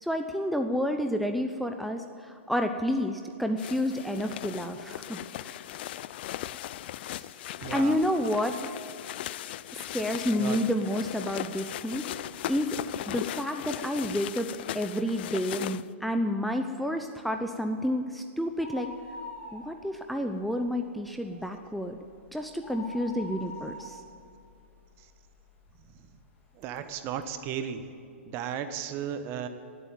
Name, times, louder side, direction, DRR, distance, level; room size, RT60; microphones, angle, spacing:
voice 1, 0.0-5.6 7.7-8.7 9.7-12.1 12.5-14.5 14.7-18.9 19.5-22.0 22.3-24.0, equal, ahead, 4 dB, 0.7 m, -30 dB
sound 1, 3.6-15.9, left 13 dB, 55° left, 0.4 m, -38 dB
voice 2, 7.6-8.0 10.4-10.6 26.6-27.8 28.2-29.5, right 9 dB, 35° right, 9 dB, 1.2 m, -34 dB
sound 2, 18.5-20.1 20.4-20.5 21.0-25.4 25.9-26.0 26.8-26.9 27.1-27.2, left 2 dB, 25° left, 3.2 m, -44 dB
18.5 x 8.4 x 7.5 m, 2.6 s
hypercardioid pair, 125°, 7 cm